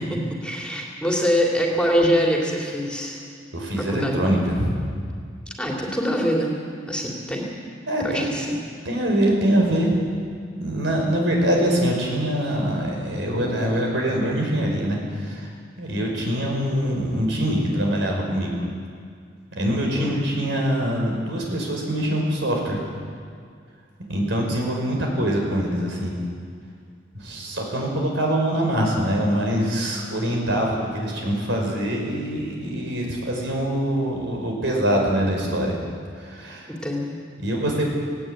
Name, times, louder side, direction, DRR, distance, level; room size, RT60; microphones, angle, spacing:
voice 1, 0.1-3.2 3.8-4.2 5.6-6.6 6.9-7.4 8.0-8.5 19.9-20.2 36.7-37.2, equal, 5° left, -1 dB, 2.9 m, -24 dB
voice 2, 3.5-4.8 7.9-8.3 8.8-9.9 10.6-15.5 15.8-18.5 19.6-22.8 24.1-26.1 27.1-35.8 36.2-36.7 37.4-37.9, equal, 75° right, 0 dB, 5.5 m, -24 dB
18.5 x 17.5 x 9.0 m, 2.2 s
head